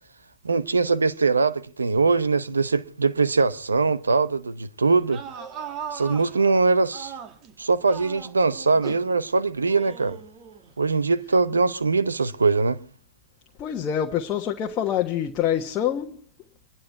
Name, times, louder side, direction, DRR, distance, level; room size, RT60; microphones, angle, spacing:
voice 1, 0.4-5.2 5.9-7.1 7.6-10.2 10.8-12.8, right 4 dB, 90° right, 0.9 m, -22 dB
sound 1, 4.9-7.5 7.9-9.1 9.7-10.7, right 7 dB, 35° right, 2.3 m, -38 dB
voice 2, 13.6-16.2, left 10 dB, 30° left, 1.3 m, -26 dB
27.5 x 10.5 x 4.6 m
hypercardioid pair, 110°, 0 cm